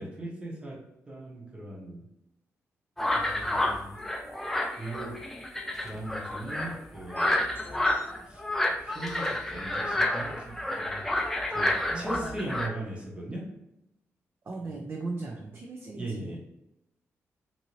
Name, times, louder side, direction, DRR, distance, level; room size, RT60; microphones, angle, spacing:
voice 1, 0.0-2.1 3.1-4.1 4.8-5.2 5.8-7.4 8.3-8.4 8.8-11.1 11.5-13.5 16.0-16.4, right 1 dB, 20° right, -2 dB, 0.9 m, -39 dB
sound 1, 3.0-12.7, left 1 dB, 5° left, 0.4 m, -29 dB
sound 2, 3.8-4.3 4.6-4.7 5.8-6.3 6.6-6.7 7.2-8.2 8.5-8.6 9.1-9.3 9.5-9.7 10.1-10.2, left 2 dB, 45° left, 0.8 m, -51 dB
voice 2, 11.9-12.5 14.4-16.4, right 3 dB, 45° right, -1 dB, 0.5 m, -38 dB
2.7 x 2.6 x 3.0 m, 0.88 s
cardioid pair, 100°, 5 cm